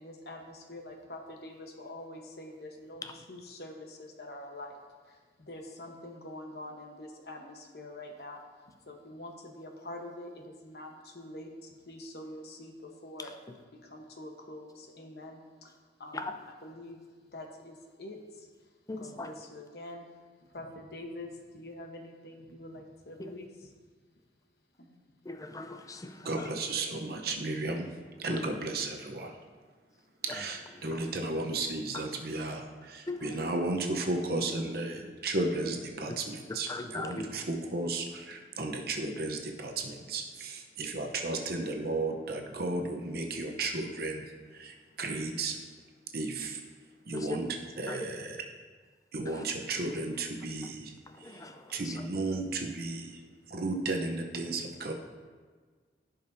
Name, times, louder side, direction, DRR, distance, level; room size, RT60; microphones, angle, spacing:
voice 1, 0.0-4.8 5.0-8.4 8.9-13.3 13.8-15.7 16.0-16.3 16.6-17.0 17.3-18.7 19.0-20.1 20.5-23.5 24.8-25.0, left 1 dB, 60° left, 3 dB, 1.1 m, -45 dB
voice 2, 18.9-19.3 23.2-23.3 25.2-26.5 28.3-28.5 30.3-31.3 31.9-32.2 33.1-33.5 36.5-37.3 47.1-47.4 47.9-48.1 49.3-49.5 51.1-52.1, left 2 dB, 20° left, 6 dB, 0.5 m, -40 dB
voice 3, 26.2-27.9 28.2-29.4 30.2-45.6 46.1-46.6 47.0-47.5 47.8-48.4 49.1-53.2 53.5-54.9, right 2 dB, 55° right, 2 dB, 0.8 m, -34 dB
15.0 x 5.3 x 2.7 m, 1.5 s
head